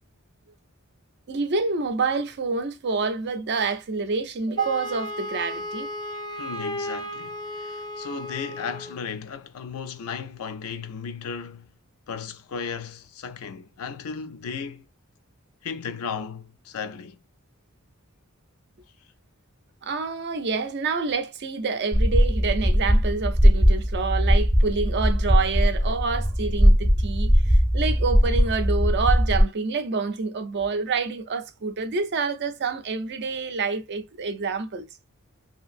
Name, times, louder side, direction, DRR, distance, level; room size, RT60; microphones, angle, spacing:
voice 1, 1.3-5.9 19.8-34.9, right 4 dB, 50° right, 0.5 m, -27 dB
Wind instrument woodwind instrument, 4.6-9.0, left 1 dB, 20° left, 0.3 m, -34 dB
voice 2, 6.4-11.7 12.1-14.9 15.6-17.2, left 6 dB, 85° left, 0.4 m, -35 dB
sound 1, 21.9-29.4, equal, 15° right, 0.7 m, -20 dB
2.8 x 2.6 x 2.4 m
head